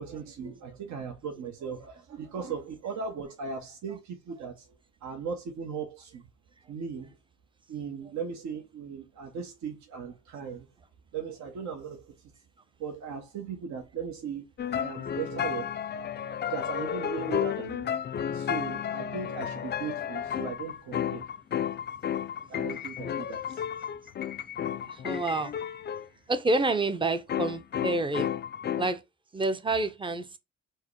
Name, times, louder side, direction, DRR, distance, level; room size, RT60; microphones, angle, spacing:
voice 1, 0.0-4.6 5.0-6.2 6.7-7.1 7.7-10.7 11.1-12.1 12.8-14.4 14.7-15.8 16.5-17.9 18.3-21.3 22.5-23.6, right 6 dB, 70° right, 0.9 m, -37 dB
sound 1, 14.6-26.1 27.3-28.9, left 9 dB, 35° left, 0.4 m, -32 dB
voice 2, 24.7-25.5 26.3-28.3 28.8-29.0 29.3-30.4, right 2 dB, 15° right, 0.6 m, -29 dB
4.7 x 2.1 x 4.5 m
cardioid pair, 90°, 30 cm